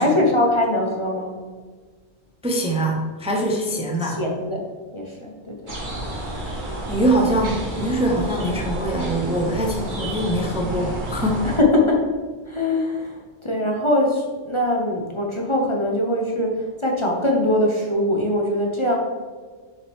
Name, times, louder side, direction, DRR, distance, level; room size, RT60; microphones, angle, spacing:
voice 1, 0.0-1.3 4.0-4.6 4.9-5.9 11.4-12.0 12.5-18.9, left 1 dB, 25° left, -1 dB, 0.9 m, -22 dB
voice 2, 2.4-4.2 6.9-11.5, right 1 dB, 5° right, -1 dB, 0.8 m, -23 dB
sound 1, 5.7-11.6, right 1 dB, 45° right, 1.6 m, -30 dB
6.8 x 5.8 x 3.6 m, 1.5 s
omnidirectional pair, 1.2 m